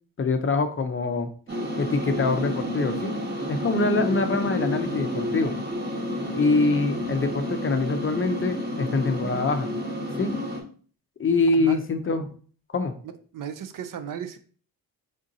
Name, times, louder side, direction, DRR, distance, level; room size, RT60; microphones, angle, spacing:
voice 1, 0.2-1.3 1.8-3.1 3.5-5.5 6.3-9.7 10.1-10.3 11.2-12.2 12.7-12.9, left 3 dB, 35° left, 7 dB, 0.5 m, -24 dB
sound 1, 1.5-10.6, equal, 25° right, 1.1 m, -30 dB
voice 2, 13.0-14.4, right 8 dB, 55° right, 10 dB, 0.5 m, -35 dB
3.7 x 2.7 x 3.8 m, 0.43 s
cardioid pair, 95°, 40 cm